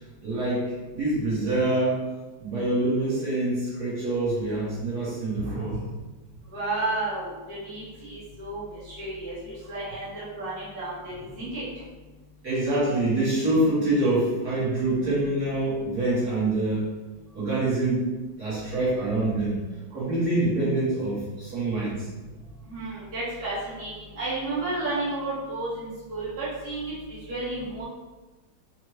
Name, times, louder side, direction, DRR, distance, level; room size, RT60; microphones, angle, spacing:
voice 1, 0.2-2.0 2.4-5.8 12.4-16.9 17.3-18.0 18.4-19.5 19.9-22.1, right 2 dB, 50° right, -11 dB, 1.9 m, -25 dB
voice 2, 6.5-11.6 22.6-27.8, right 2 dB, 30° right, -11 dB, 1.5 m, -32 dB
4.3 x 2.6 x 3.1 m, 1.2 s
omnidirectional pair, 2.2 m